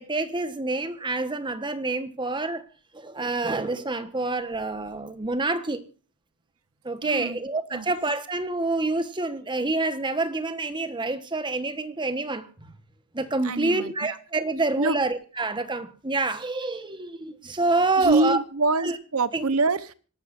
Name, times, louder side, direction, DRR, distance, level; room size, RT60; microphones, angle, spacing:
voice 1, 0.0-2.6 2.9-5.8 6.8-12.7 13.1-18.4 18.8-18.9 19.3-19.5, right 3 dB, 20° right, 1.3 m, -27 dB
voice 2, 7.0-7.4 7.7-7.9 13.4-14.2 14.8-15.0 18.0-19.9, right 3 dB, 90° right, 1.0 m, -25 dB
26.0 x 12.0 x 2.6 m
head